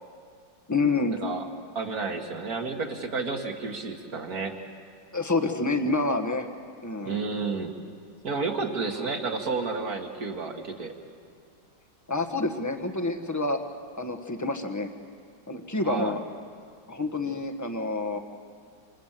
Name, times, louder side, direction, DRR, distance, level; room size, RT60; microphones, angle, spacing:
voice 1, 0.7-1.2 5.1-6.5 6.8-7.2 9.0-9.1 12.1-13.6 14.0-14.9 15.5-16.2 16.9-18.2, left 3 dB, 10° left, 5 dB, 1.1 m, -28 dB
voice 2, 1.8-4.6 7.0-7.7 8.2-10.9 15.8-16.2, right 4 dB, 55° right, 3 dB, 2.4 m, -31 dB
27.5 x 27.0 x 7.5 m, 2.1 s
omnidirectional pair, 2.0 m